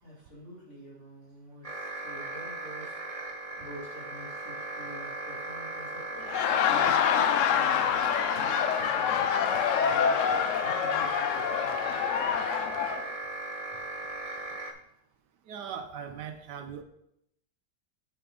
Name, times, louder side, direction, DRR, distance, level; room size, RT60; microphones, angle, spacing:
voice 1, 0.0-3.0 3.2-6.0 6.7-10.2 10.6-12.4, equal, 40° left, -4 dB, 2.6 m, -47 dB
sound 1, 1.6-14.7, right 3 dB, 45° right, 0.4 m, -38 dB
Laughter, 6.2-13.0, left 8 dB, 85° left, 0.6 m, -26 dB
voice 2, 15.5-16.8, right 7 dB, 75° right, 7 dB, 1.2 m, -39 dB
7.7 x 6.7 x 3.8 m, 0.78 s
omnidirectional pair, 1.9 m